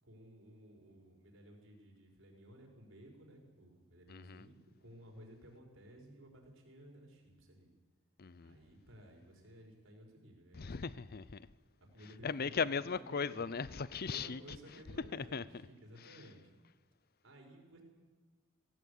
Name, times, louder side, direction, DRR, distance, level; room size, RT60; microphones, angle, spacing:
voice 1, 0.0-7.7 8.4-11.0 11.9-12.6 13.1-13.5 14.1-16.5 17.2-17.8, right 1 dB, 65° right, 5.2 m, -56 dB
voice 2, 4.1-4.5 8.2-8.6 10.5-11.5 12.0-14.6 15.0-15.4 16.0-16.2, left 5 dB, 45° left, 0.6 m, -38 dB
18.0 x 17.5 x 8.6 m
head